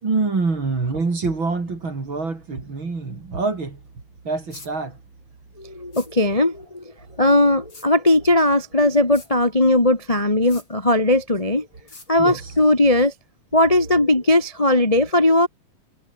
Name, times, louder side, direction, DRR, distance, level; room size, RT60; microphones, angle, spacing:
voice 1, 0.0-3.8 4.2-5.0 12.2-12.4, right 3 dB, 35° right, 4.6 m, -25 dB
sound 1, 4.5-4.7 5.9-6.1 7.7-7.9 9.1-9.3 10.5-10.7 11.9-12.1, left 3 dB, 30° left, 7.2 m, -43 dB
voice 2, 5.6-6.8 7.2-11.7 12.1-13.1 13.5-15.5, left 1 dB, 10° left, 2.1 m, -18 dB
omnidirectional pair, 3.9 m